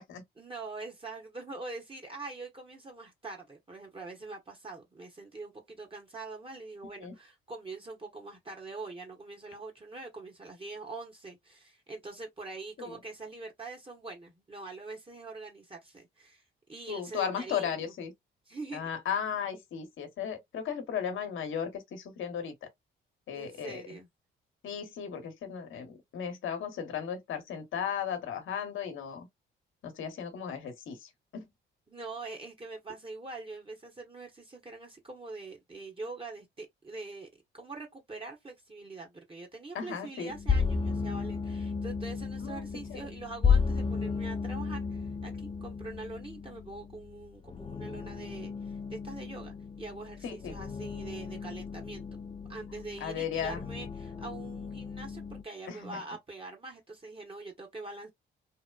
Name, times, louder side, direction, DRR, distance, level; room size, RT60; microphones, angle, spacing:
voice 1, 0.4-16.4 16.7-17.9 18.5-18.9 23.3-24.1 31.9-37.3 37.5-52.2 52.5-58.1, right 3 dB, 25° right, 1.0 m, -44 dB
voice 2, 16.9-18.1 18.7-22.7 23.3-23.8 24.6-29.3 29.8-31.5 39.7-40.3 42.4-43.0 50.2-50.5 53.0-53.7 55.7-56.0, left 8 dB, 70° left, 0.9 m, -36 dB
sound 1, 40.3-55.4, left 5 dB, 25° left, 0.4 m, -34 dB
2.9 x 2.1 x 2.3 m
supercardioid pair, 70°, 21 cm